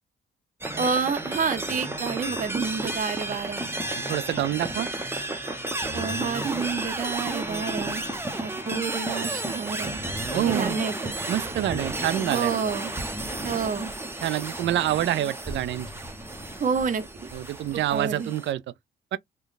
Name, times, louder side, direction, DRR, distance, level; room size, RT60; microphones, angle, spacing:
sound 1, 0.6-18.5, right 2 dB, 10° right, 0.8 m, -32 dB
voice 1, 0.8-3.7 5.9-8.0 8.4-10.0 10.5-11.1 12.3-12.9 13.4-13.9 16.6-17.3 17.7-18.3, right 6 dB, 40° right, 0.8 m, -29 dB
voice 2, 4.1-4.9 10.3-10.8 11.3-12.5 14.2-15.9 17.3-18.6 19.1-19.2, right 12 dB, 65° right, 0.4 m, -27 dB
3.2 x 2.2 x 4.0 m
cardioid pair, 90°, 20 cm